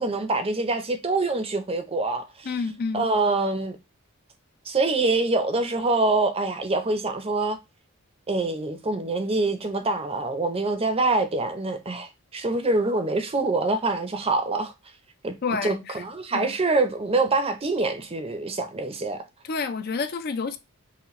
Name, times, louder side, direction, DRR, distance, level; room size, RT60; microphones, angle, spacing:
voice 1, 0.0-2.5 2.9-3.8 4.7-7.6 8.3-14.7 15.2-15.3 15.6-19.2, right 3 dB, 25° right, 0.6 m, -25 dB
voice 2, 2.4-3.1 15.4-15.9 16.3-16.5 19.4-20.6, left 4 dB, 45° left, 0.4 m, -29 dB
5.7 x 2.2 x 3.1 m
head